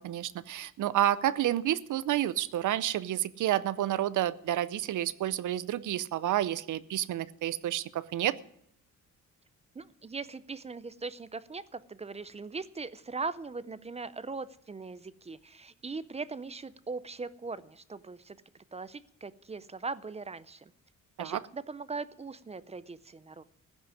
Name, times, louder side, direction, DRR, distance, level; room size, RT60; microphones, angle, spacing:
voice 1, 0.0-8.3 21.2-21.4, right 12 dB, 75° right, 17 dB, 0.6 m, -30 dB
voice 2, 9.8-18.4 18.7-20.7 21.2-23.4, right 4 dB, 20° right, 16 dB, 0.4 m, -40 dB
15.0 x 6.2 x 9.6 m, 0.73 s
cardioid pair, 135°, 31 cm